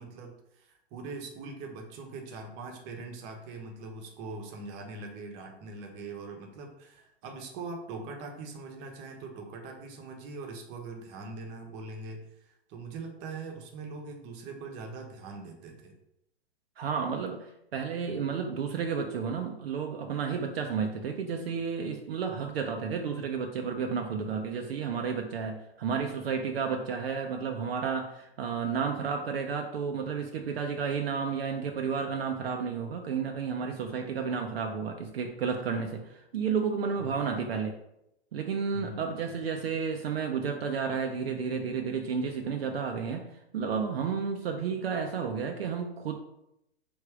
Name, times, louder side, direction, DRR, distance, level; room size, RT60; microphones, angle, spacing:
voice 1, 0.0-15.9 37.0-37.2 38.7-39.1, right 3 dB, 35° right, 2 dB, 0.9 m, -42 dB
voice 2, 16.8-37.8 38.3-46.1, right 6 dB, 65° right, 3 dB, 0.6 m, -32 dB
3.5 x 2.7 x 4.7 m, 0.82 s
figure-of-eight pair, 105°, 32 cm